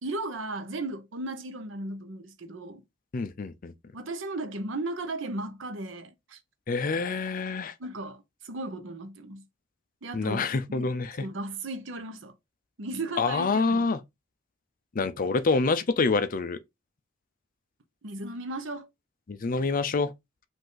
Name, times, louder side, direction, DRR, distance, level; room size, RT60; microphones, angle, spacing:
voice 1, 0.0-2.8 3.9-6.4 7.8-9.4 10.0-10.9 11.2-12.3 12.8-13.9 18.0-18.9, right 2 dB, 70° right, 0.8 m, -36 dB
voice 2, 3.1-3.7 6.7-7.7 10.1-11.3 13.2-14.0 14.9-16.6 19.3-20.1, left 4 dB, 45° left, 0.5 m, -26 dB
5.3 x 2.6 x 3.8 m
head